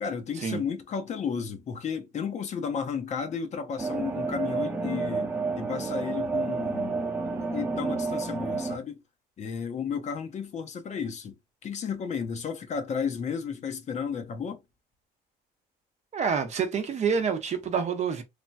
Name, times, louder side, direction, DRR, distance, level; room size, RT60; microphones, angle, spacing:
voice 1, 0.0-5.3 5.6-9.0 9.4-11.4 11.6-14.6, left 6 dB, 45° left, 0.6 m, -33 dB
sound 1, 3.8-8.8, right 4 dB, 10° right, 0.8 m, -30 dB
voice 2, 16.1-18.2, right 6 dB, 40° right, 0.7 m, -27 dB
3.3 x 2.2 x 2.5 m
cardioid pair, 110°, 17 cm